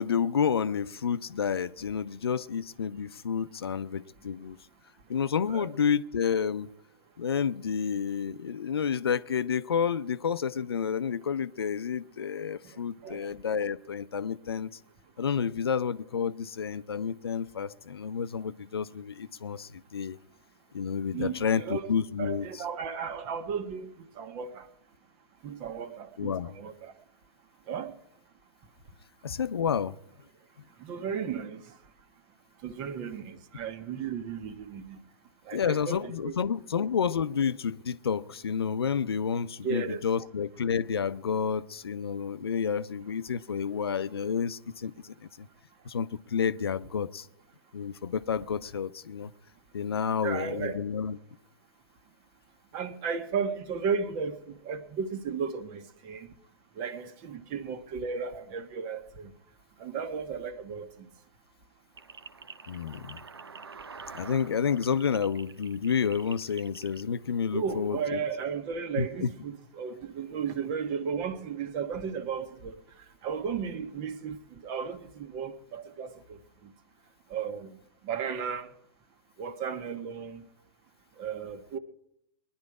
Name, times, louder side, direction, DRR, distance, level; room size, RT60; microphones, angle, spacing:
voice 1, 0.0-4.6 5.1-6.7 7.2-14.7 15.2-20.2 20.7-22.5 26.2-26.5 29.2-30.0 35.5-45.5 45.8-47.3 47.7-49.3 49.7-51.2 62.7-63.2 64.1-68.2 69.0-69.3, left 7 dB, 80° left, 0.6 m, -30 dB
voice 2, 21.1-21.9 22.2-23.9 24.2-24.7 25.4-26.9 27.7-27.9 30.8-31.6 32.6-35.0 35.5-36.3 39.6-40.0 50.2-50.8 52.7-54.4 54.6-56.3 56.8-59.3 59.8-60.9 67.5-72.8 73.2-74.4 74.6-76.1 77.3-77.7 78.0-78.7 79.4-80.4 81.2-81.8, right 6 dB, 40° right, 1.4 m, -34 dB
sound 1, 62.0-67.0, right 5 dB, 85° right, 0.7 m, -47 dB
21.0 x 10.5 x 4.8 m
figure-of-eight pair, 110°, 13 cm